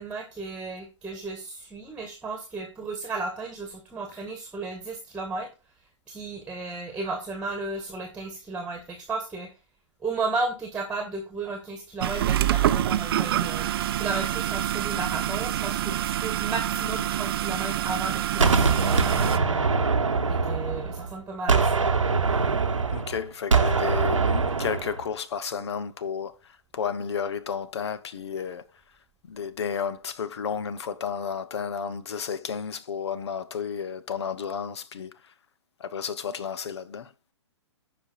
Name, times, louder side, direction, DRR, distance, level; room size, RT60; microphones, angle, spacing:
voice 1, 0.0-5.5 6.1-9.5 10.0-13.7 14.0-19.9 20.3-21.8, right 3 dB, 5° right, 1.4 m, -34 dB
sound 1, 12.0-19.4, right 12 dB, 50° right, 0.6 m, -26 dB
Gunshot gunfire, 18.4-21.1 21.5-25.0, right 4 dB, 85° right, 1.1 m, -23 dB
voice 2, 22.9-26.3 26.7-28.6 29.3-35.1 35.8-37.1, left 7 dB, 60° left, 0.8 m, -32 dB
15.0 x 5.2 x 2.4 m
figure-of-eight pair, 120°, 16 cm